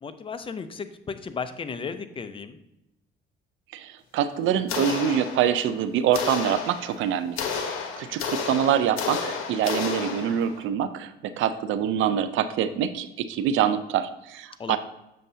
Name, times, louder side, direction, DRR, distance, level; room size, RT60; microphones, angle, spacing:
voice 1, 0.0-2.6 14.6-14.8, left 5 dB, 25° left, 10 dB, 0.6 m, -34 dB
voice 2, 3.7-14.8, right 9 dB, 70° right, 12 dB, 0.5 m, -25 dB
sound 1, 4.7-5.7 6.1-10.6, left 5 dB, 80° left, 1.1 m, -31 dB
7.6 x 6.5 x 2.7 m, 0.91 s
cardioid pair, 100°, 21 cm